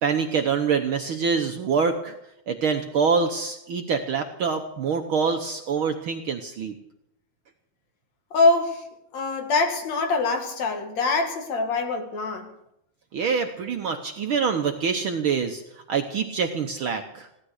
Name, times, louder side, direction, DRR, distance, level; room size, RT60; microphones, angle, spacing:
voice 1, 0.0-2.1 2.5-6.7 13.1-15.6 15.9-17.3, right 5 dB, 65° right, 5 dB, 1.4 m, -25 dB
voice 2, 8.3-8.8 9.1-12.5, left 3 dB, 65° left, 4 dB, 3.1 m, -24 dB
17.0 x 13.0 x 6.5 m, 0.81 s
omnidirectional pair, 3.3 m